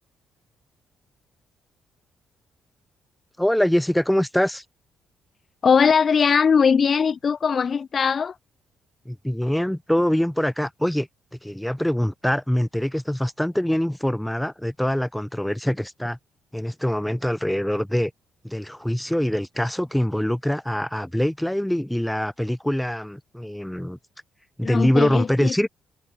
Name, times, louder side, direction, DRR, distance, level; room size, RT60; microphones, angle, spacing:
voice 1, 3.4-4.6 9.0-11.1 11.4-16.2 16.5-18.1 18.4-24.0 24.6-25.7, equal, 5° left, 2.9 m, -24 dB
voice 2, 5.6-8.3 24.6-25.5, left 6 dB, 45° left, 1.6 m, -20 dB
cardioid pair, 90°, 0 cm